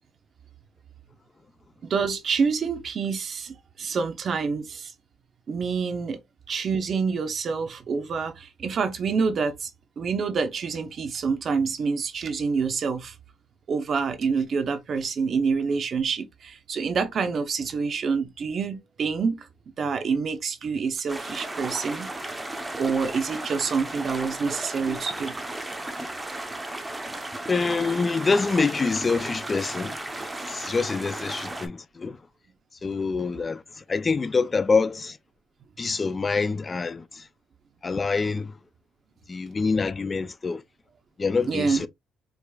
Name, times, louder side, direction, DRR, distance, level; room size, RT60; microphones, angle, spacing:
voice 1, 1.8-4.9 5.5-6.2 6.5-9.7 10.0-13.2 13.7-19.5 19.8-22.1 22.7-25.3 41.5-41.8, right 5 dB, 45° right, 0.6 m, -27 dB
sound 1, 21.1-31.7, right 2 dB, 10° right, 0.7 m, -35 dB
voice 2, 27.5-32.2 32.8-35.2 35.8-37.3 37.8-38.6 39.3-40.6 41.2-41.9, left 4 dB, 25° left, 0.3 m, -26 dB
4.7 x 2.4 x 2.3 m
cardioid pair, 125°, 0 cm